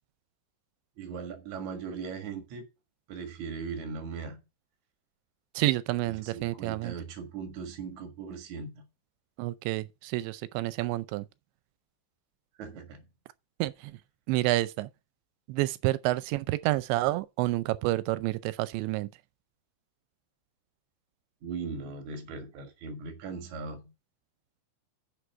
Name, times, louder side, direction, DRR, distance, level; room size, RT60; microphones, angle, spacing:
voice 1, 1.0-2.7 3.1-4.4 6.2-8.9 12.5-13.1 21.4-23.9, right 5 dB, 55° right, 2.2 m, -39 dB
voice 2, 5.6-6.9 9.4-11.2 13.6-13.9 14.3-14.9 15.5-19.1, right 18 dB, 80° right, 2.8 m, -29 dB
10.0 x 6.6 x 4.6 m
omnidirectional pair, 5.3 m